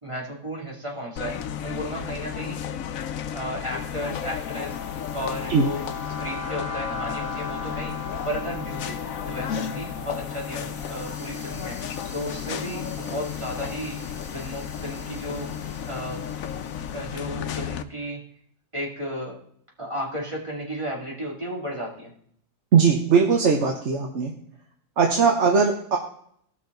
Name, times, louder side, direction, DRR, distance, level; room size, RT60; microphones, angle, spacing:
voice 1, 0.0-2.6 3.3-4.8 5.1-5.8 6.2-8.0 8.2-11.8 12.1-14.0 14.3-15.5 15.9-16.2 16.9-18.2 18.7-19.4 19.8-22.1, equal, 20° right, -3 dB, 2.7 m, -34 dB
sound 1, 1.2-17.8, left 8 dB, 80° left, 1.1 m, -33 dB
sound 2, 3.7-17.1, left 4 dB, 80° right, 3.9 m, -40 dB
voice 2, 22.7-24.3 25.0-26.0, right 5 dB, 60° right, 1 dB, 1.3 m, -19 dB
18.0 x 6.2 x 3.9 m, 0.66 s
omnidirectional pair, 1.4 m